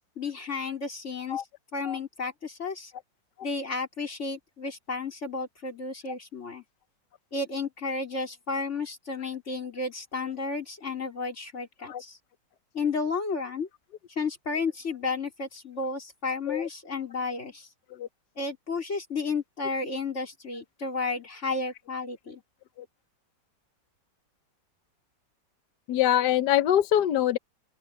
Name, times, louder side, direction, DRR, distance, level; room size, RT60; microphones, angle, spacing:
voice 1, 0.2-1.4 1.7-2.9 3.4-6.6 7.3-12.2 12.7-13.7 14.2-17.7 18.4-22.4, left 4 dB, 35° left, 4.1 m, -32 dB
voice 2, 25.9-27.4, left 11 dB, 65° left, 1.3 m, -24 dB
open air
omnidirectional pair, 2.0 m